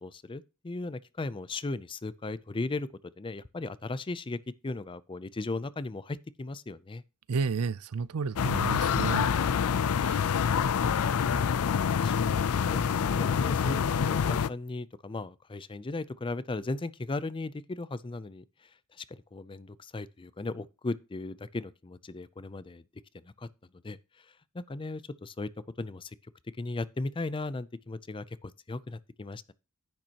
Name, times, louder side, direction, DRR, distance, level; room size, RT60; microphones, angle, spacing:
voice 1, 0.0-7.0 11.2-11.5 11.9-22.8 23.2-23.5 23.8-25.5 25.8-26.2 26.6-29.5, left 2 dB, 25° left, 0.4 m, -37 dB
voice 2, 7.3-9.3 10.0-10.2, right 5 dB, 85° right, 0.5 m, -31 dB
sound 1, 8.4-14.5, left 7 dB, 80° left, 0.4 m, -26 dB
10.5 x 9.1 x 2.9 m
head